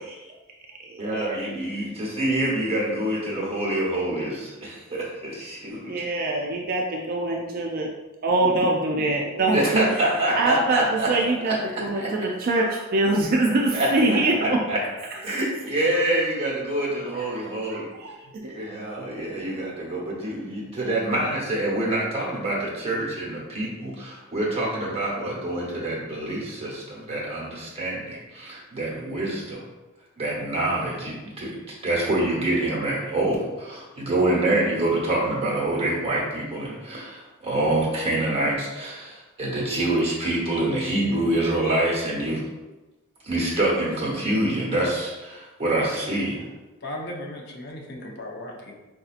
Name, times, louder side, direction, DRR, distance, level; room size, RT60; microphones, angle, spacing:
voice 1, 1.0-5.9 9.5-11.1 11.4-11.5 11.9-12.2 13.7-14.8 15.2-17.9 18.5-29.6 30.2-31.6 31.8-42.4 43.2-46.4, right 1 dB, 30° right, -5 dB, 1.1 m, -26 dB
voice 2, 5.9-7.9 8.2-9.8 10.4-14.6 15.3-15.4 17.1-17.4 17.7-18.5, right 2 dB, 45° right, 0 dB, 0.4 m, -24 dB
voice 3, 46.8-48.8, left 1 dB, 50° left, 0 dB, 0.6 m, -36 dB
4.8 x 2.6 x 2.5 m, 1.1 s
head